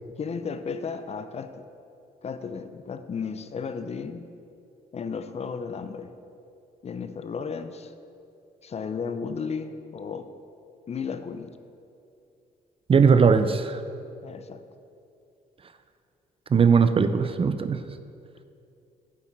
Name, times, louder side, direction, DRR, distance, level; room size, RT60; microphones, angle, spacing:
voice 1, 0.2-1.6 2.2-4.3 4.9-6.1 6.8-7.9 8.6-10.3 10.9-11.6 14.2-14.6, left 5 dB, 40° left, 10 dB, 0.5 m, -34 dB
voice 2, 12.9-13.8 16.5-17.8, right 5 dB, 35° right, 10 dB, 0.5 m, -19 dB
8.4 x 7.3 x 4.4 m, 2.5 s
supercardioid pair, 75°, 17 cm